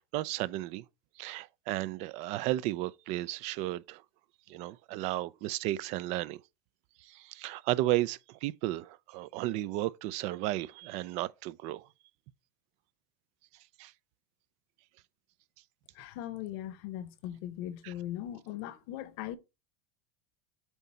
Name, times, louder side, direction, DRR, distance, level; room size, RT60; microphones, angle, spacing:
voice 1, 0.1-0.8 1.2-4.0 4.5-6.4 7.0-11.8 13.8-13.9 17.8-17.9, right 16 dB, 50° right, 0.4 m, -33 dB
voice 2, 15.9-19.4, left 12 dB, 60° left, 0.9 m, -39 dB
8.0 x 2.7 x 4.3 m
supercardioid pair, 115°, 15 cm